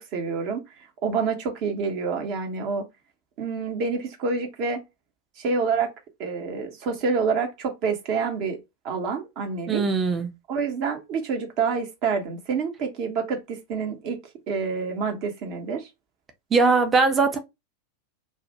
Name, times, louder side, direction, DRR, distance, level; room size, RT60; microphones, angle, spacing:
voice 1, 0.1-0.6 1.0-2.8 3.4-4.8 5.4-5.9 6.2-8.6 8.8-9.8 10.5-14.2 14.5-15.9, right 5 dB, 40° right, 0.9 m, -27 dB
voice 2, 9.7-10.3 16.5-17.4, right 4 dB, 20° right, 0.6 m, -20 dB
2.3 x 2.2 x 2.9 m
figure-of-eight pair, 90°, 0 cm